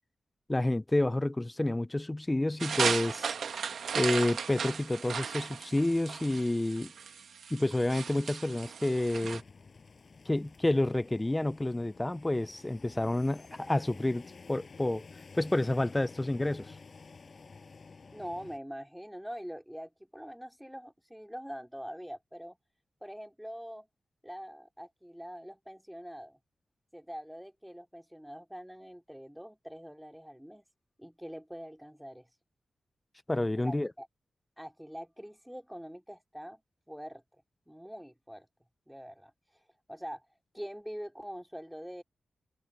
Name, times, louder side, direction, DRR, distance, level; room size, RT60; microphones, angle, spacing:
voice 1, 0.5-3.3 3.9-6.9 7.5-9.4 10.3-15.0 15.3-16.7 33.3-33.9, left 1 dB, 15° left, 0.5 m, -29 dB
sound 1, 2.6-9.4, right 6 dB, 80° right, 1.3 m, -36 dB
sound 2, 9.1-18.6, left 4 dB, 45° left, 6.4 m, -52 dB
voice 2, 18.1-22.6 23.0-23.9 24.2-26.4 26.9-30.6 31.0-32.3 33.6-34.1 34.6-36.6 36.9-37.2 37.7-38.5 38.9-39.3 39.9-40.3 40.5-42.0, equal, ahead, 2.6 m, -44 dB
wide cardioid pair, 125°, 0 cm